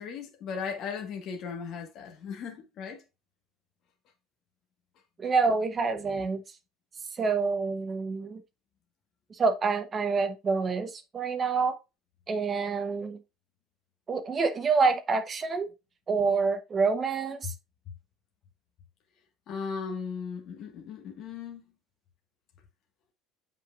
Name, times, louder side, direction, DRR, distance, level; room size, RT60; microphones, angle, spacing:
voice 1, 0.0-3.0 19.5-21.6, left 6 dB, 40° left, 1.5 m, -37 dB
voice 2, 5.2-6.4 7.1-8.4 9.3-11.7 12.3-13.2 14.1-15.7 16.1-17.5, right 4 dB, 20° right, 0.8 m, -27 dB
7.8 x 5.7 x 2.4 m
cardioid pair, 180°, 0 cm